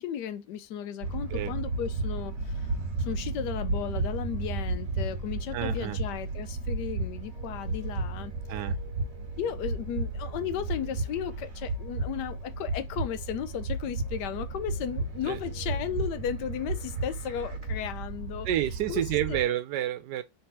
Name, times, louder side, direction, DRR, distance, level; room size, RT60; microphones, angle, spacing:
voice 1, 0.0-2.7 3.0-8.3 9.4-18.5 18.9-19.0 19.3-19.4, left 9 dB, 85° left, 1.2 m, -35 dB
sound 1, 1.0-19.4, right 2 dB, 50° right, 1.4 m, -33 dB
voice 2, 5.5-6.0 8.5-8.8 15.3-15.4 18.4-20.2, right 12 dB, 90° right, 1.2 m, -29 dB
3.4 x 3.3 x 4.3 m
omnidirectional pair, 1.7 m